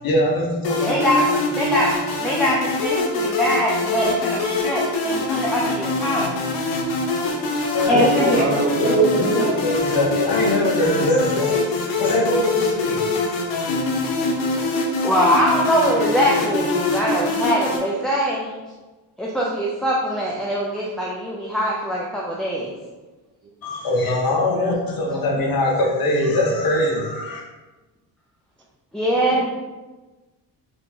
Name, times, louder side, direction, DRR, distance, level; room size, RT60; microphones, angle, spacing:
voice 1, 0.0-1.0 7.7-8.4 8.8-13.0 13.5-13.7 23.6-27.4, left 1 dB, 55° left, -1 dB, 1.1 m, -22 dB
sound 1, 0.6-17.8, left 2 dB, 85° left, 0.9 m, -24 dB
voice 2, 0.8-1.9 2.2-6.4 7.9-8.4 15.0-18.5 19.2-22.7 28.9-29.4, equal, ahead, -5 dB, 0.4 m, -22 dB
voice 3, 7.9-9.6 23.4-23.5 29.2-29.4, right 2 dB, 25° right, 2 dB, 0.7 m, -25 dB
3.7 x 2.9 x 3.7 m, 1.2 s
cardioid pair, 90°, 43 cm